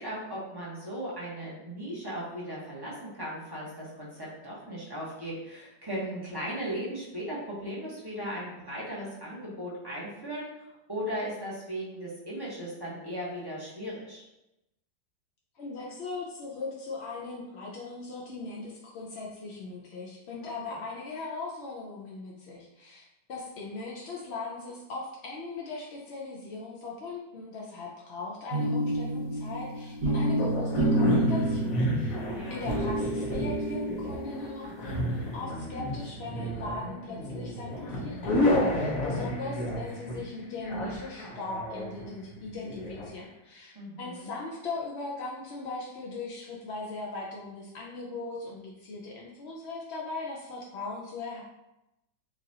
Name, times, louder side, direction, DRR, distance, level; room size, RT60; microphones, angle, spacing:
voice 1, 0.0-14.2 20.7-20.8 32.3-32.7 43.7-44.3, equal, 15° right, -7 dB, 1.0 m, -37 dB
voice 2, 15.6-32.1 32.5-51.4, left 3 dB, 75° left, -3 dB, 0.6 m, -39 dB
sound 1, 28.5-34.6, right 1 dB, 80° right, 2.2 m, -28 dB
sound 2, 30.4-43.1, left 1 dB, 60° left, 1.2 m, -32 dB
6.6 x 2.5 x 2.7 m, 0.91 s
omnidirectional pair, 1.9 m